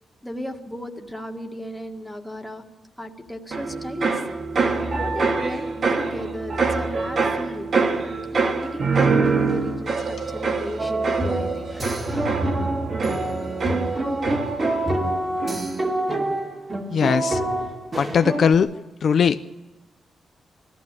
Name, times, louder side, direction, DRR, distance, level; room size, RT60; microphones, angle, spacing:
voice 1, 0.2-2.6 3.0-4.2 4.8-7.7 8.3-12.3, equal, ahead, 3 dB, 1.8 m, -36 dB
sound 1, 3.5-15.1 15.4-15.9, right 4 dB, 50° right, 2.2 m, -25 dB
sound 2, 10.8-18.5, right 1 dB, 25° right, 2.3 m, -26 dB
voice 2, 16.9-17.7 18.0-18.7 19.0-19.5, left 7 dB, 55° left, 10 dB, 0.6 m, -20 dB
21.5 x 14.5 x 8.4 m, 1.1 s
wide cardioid pair, 135°, 0 cm